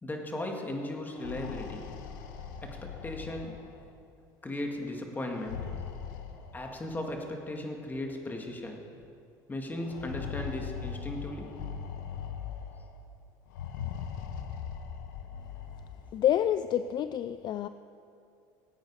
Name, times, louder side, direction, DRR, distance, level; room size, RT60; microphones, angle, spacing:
voice 1, 0.0-1.9 2.6-3.5 4.4-5.7 6.5-8.9 9.5-11.6, left 1 dB, 20° left, 2 dB, 2.1 m, -37 dB
sound 1, 1.0-3.9 5.3-6.9 7.9-8.0 8.4-8.5 9.8-12.9 13.5-16.1, left 8 dB, 90° left, 1.0 m, -40 dB
voice 2, 16.1-17.7, left 11 dB, 45° left, 12 dB, 0.4 m, -28 dB
18.0 x 9.1 x 4.9 m, 2.5 s
supercardioid pair, 95°, 10 cm